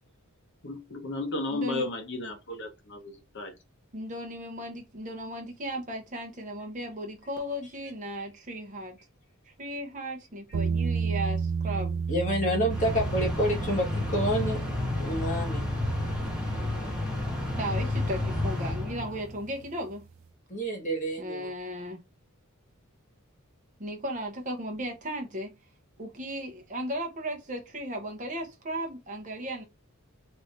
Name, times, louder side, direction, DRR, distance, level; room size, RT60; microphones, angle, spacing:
voice 1, 0.6-3.5, left 2 dB, 55° left, 0.9 m, -34 dB
voice 2, 1.5-1.9 3.9-9.0 9.4-12.0 17.6-20.0 21.2-22.0 23.8-25.5 26.0-29.6, equal, 35° right, 0.8 m, -36 dB
sound 1, 10.5-19.5, right 5 dB, 60° right, 0.4 m, -34 dB
voice 3, 12.1-14.6 15.0-15.6 20.5-21.5, equal, 35° left, 1.6 m, -28 dB
sound 2, 12.7-19.5, left 1 dB, 5° right, 1.1 m, -31 dB
3.2 x 2.7 x 3.2 m
head